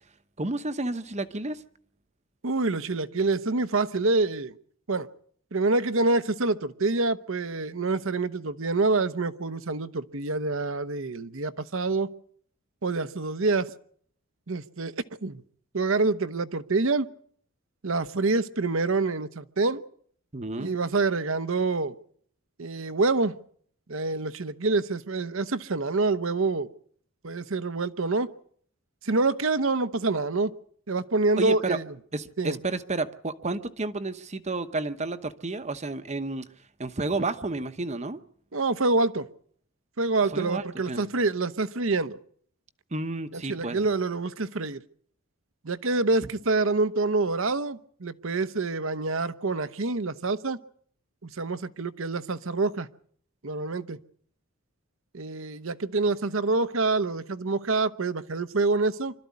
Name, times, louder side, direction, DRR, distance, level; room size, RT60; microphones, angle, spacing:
voice 1, 0.4-1.6 20.3-20.7 31.4-31.8 32.1-36.5 36.8-38.2 40.3-41.0 42.9-43.9, right 2 dB, 30° right, 1.0 m, -31 dB
voice 2, 2.4-4.5 4.9-5.1 5.5-12.1 12.8-13.7 14.5-14.9 15.2-15.4 15.7-17.1 17.8-19.8 20.6-21.9 22.6-23.3 23.9-26.7 27.2-28.3 29.0-30.5 30.9-31.8 32.4-32.6 38.5-39.3 40.0-42.2 43.3-44.8 45.6-50.6 51.2-52.9 53.4-54.0 55.1-59.1, right 3 dB, 60° right, 0.9 m, -26 dB
25.5 x 13.0 x 9.5 m
head